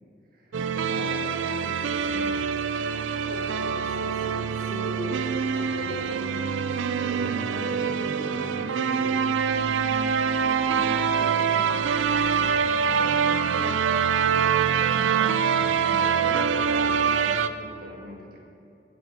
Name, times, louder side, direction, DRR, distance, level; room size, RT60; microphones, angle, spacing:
voice 1, 0.3-2.5 6.1-6.5 7.0-13.8 14.8-18.5, equal, 50° right, 0 dB, 1.5 m, -40 dB
sound 1, 0.5-17.5, right 6 dB, 80° right, 0.4 m, -25 dB
voice 2, 3.3-6.2, equal, 40° left, 0 dB, 1.5 m, -38 dB
15.0 x 6.4 x 5.3 m, 2.6 s
head